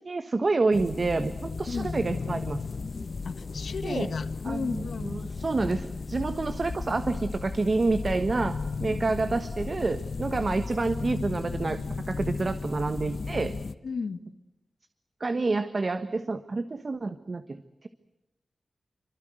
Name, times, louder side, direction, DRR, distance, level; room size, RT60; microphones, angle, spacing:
voice 1, 0.0-2.6 3.8-4.1 4.5-13.5 15.2-17.9, right 3 dB, 45° right, 9 dB, 1.4 m, -28 dB
sound 1, 0.7-13.7, left 4 dB, 60° left, 1.1 m, -35 dB
voice 2, 3.2-5.2 13.8-14.2, left 5 dB, 90° left, 10 dB, 1.7 m, -34 dB
27.5 x 24.5 x 7.8 m, 0.94 s
wide cardioid pair, 105°, 0 cm